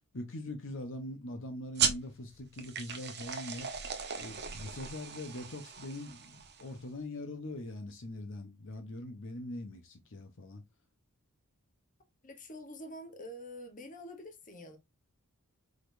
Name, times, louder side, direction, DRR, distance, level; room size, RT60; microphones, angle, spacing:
voice 1, 0.1-3.7 4.2-10.6, left 1 dB, 60° left, 0.9 m, -42 dB
sound 1, 1.8-6.8, right 7 dB, 50° right, 0.9 m, -36 dB
voice 2, 12.2-14.8, left 1 dB, 35° left, 1.1 m, -46 dB
5.0 x 4.0 x 2.6 m
head